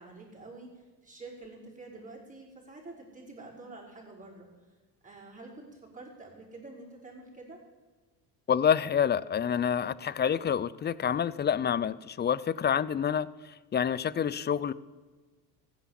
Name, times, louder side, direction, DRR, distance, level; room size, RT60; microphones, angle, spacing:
voice 1, 0.0-4.7 5.0-7.6, right 2 dB, 15° right, -3 dB, 5.7 m, -48 dB
voice 2, 8.5-14.7, left 8 dB, 25° left, 18 dB, 0.5 m, -28 dB
15.0 x 10.0 x 7.7 m, 1.3 s
supercardioid pair, 90°, 46 cm